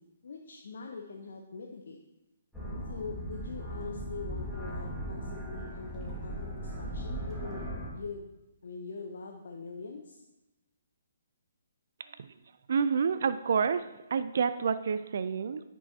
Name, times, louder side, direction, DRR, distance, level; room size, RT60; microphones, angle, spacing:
voice 1, 0.0-2.0 2.9-8.3 8.6-10.2, left 4 dB, 65° left, 2 dB, 0.7 m, -43 dB
sound 1, 2.5-7.9, equal, ahead, 1.8 m, -38 dB
voice 2, 12.7-13.8 14.1-15.6, right 6 dB, 60° right, 12 dB, 0.3 m, -28 dB
9.5 x 5.4 x 2.8 m, 0.96 s
figure-of-eight pair, 135°, 0 cm